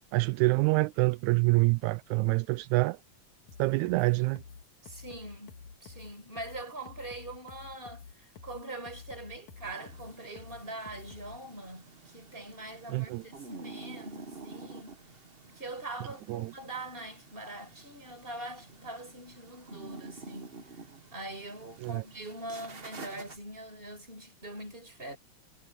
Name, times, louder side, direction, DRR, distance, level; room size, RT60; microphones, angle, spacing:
voice 1, 0.1-3.0 3.6-4.4 12.9-13.2 16.3-16.5 21.8-22.0, right 24 dB, 85° right, 1.9 m, -26 dB
sound 1, 3.5-11.4, left 5 dB, 75° left, 3.1 m, -49 dB
voice 2, 4.8-14.9 15.5-20.6 21.1-25.2, right 2 dB, 15° right, 5.5 m, -43 dB
sound 2, 9.6-23.4, right 3 dB, 35° right, 0.9 m, -49 dB
omnidirectional pair, 3.3 m